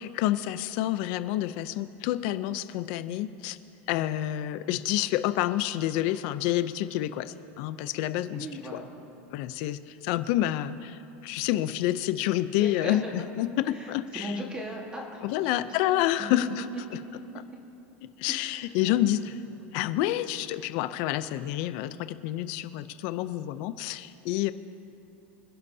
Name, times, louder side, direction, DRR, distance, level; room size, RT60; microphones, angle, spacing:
voice 1, 0.0-3.6 3.9-8.5 9.3-14.3 15.2-16.6 18.2-19.3 19.7-24.5, left 14 dB, 50° left, 13 dB, 0.5 m, -28 dB
voice 2, 8.3-8.9 12.6-13.1 13.6-15.8 16.7-17.0 18.3-19.0, right 1 dB, 15° right, 0 dB, 1.6 m, -39 dB
26.0 x 11.0 x 2.8 m, 2.7 s
supercardioid pair, 160°, 7 cm